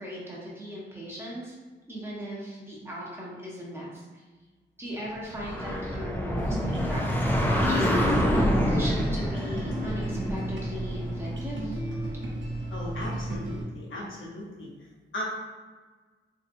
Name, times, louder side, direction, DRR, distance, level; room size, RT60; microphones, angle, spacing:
voice 1, 0.0-1.5 1.9-4.3 4.8-11.8, equal, 10° right, -5 dB, 0.9 m, -38 dB
sound 1, 5.3-11.9, equal, 10° left, 0.4 m, -27 dB
sound 2, 6.4-13.6, right 1 dB, 65° right, 0.8 m, -33 dB
voice 2, 12.7-14.7 15.1-15.2, left 1 dB, 75° left, -3 dB, 0.9 m, -37 dB
3.8 x 2.7 x 2.6 m, 1.3 s
wide cardioid pair, 145°, 20 cm